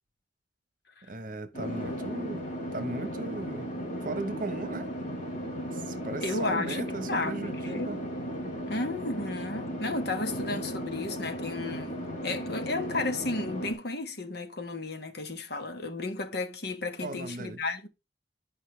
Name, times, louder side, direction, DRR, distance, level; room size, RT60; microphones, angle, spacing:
voice 1, 1.1-2.5 2.7-3.7 4.0-4.9 5.7-8.0 17.0-17.6, right 2 dB, 50° right, 1.0 m, -37 dB
sound 1, 1.5-13.7, equal, 45° left, 2.8 m, -36 dB
voice 2, 6.2-7.4 7.6-8.0 8.7-17.9, left 3 dB, 60° left, 1.3 m, -33 dB
10.5 x 5.4 x 3.3 m
head